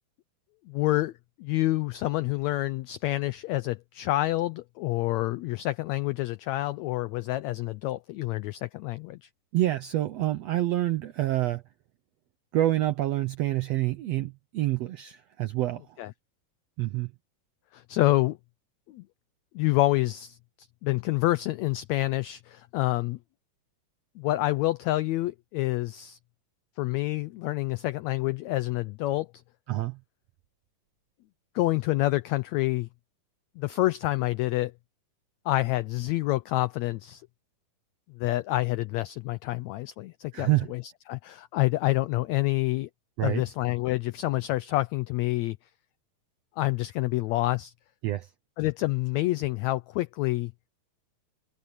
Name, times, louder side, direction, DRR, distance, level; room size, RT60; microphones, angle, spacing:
voice 1, 0.7-1.1 1.4-9.3 16.0-16.1 17.7-18.4 18.9-19.0 19.5-23.2 24.2-26.2 26.8-29.3 31.5-32.9 33.6-34.7 35.4-37.2 38.1-42.9 43.2-45.6 46.6-47.7 48.6-50.5, left 18 dB, 90° left, 1.5 m, -28 dB
voice 2, 9.5-11.6 12.5-15.8 16.8-17.1 29.7-30.0 40.3-40.7 43.2-43.4 48.0-48.3, right 15 dB, 80° right, 1.5 m, -27 dB
omnidirectional pair, 3.8 m